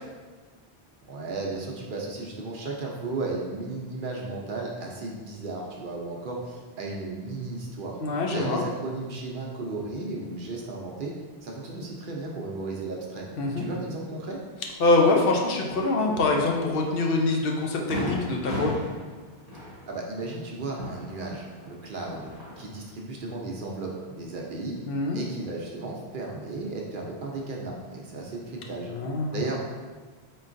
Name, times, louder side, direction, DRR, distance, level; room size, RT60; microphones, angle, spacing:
voice 1, 1.0-8.0 8.3-11.1 11.4-13.2 13.6-14.4 19.9-22.3 22.6-24.8 25.1-28.9 29.3-29.6, right 3 dB, 60° right, -1 dB, 0.7 m, -34 dB
voice 2, 8.0-8.6 13.4-13.7 14.8-18.7 24.9-25.2 28.9-29.5, left 2 dB, 65° left, 0 dB, 0.7 m, -24 dB
Fireworks, 16.9-17.0 17.4-17.5 17.9-21.7 22.0-22.8, equal, 15° left, 1.3 m, -35 dB
3.8 x 3.7 x 2.5 m, 1.4 s
omnidirectional pair, 1.1 m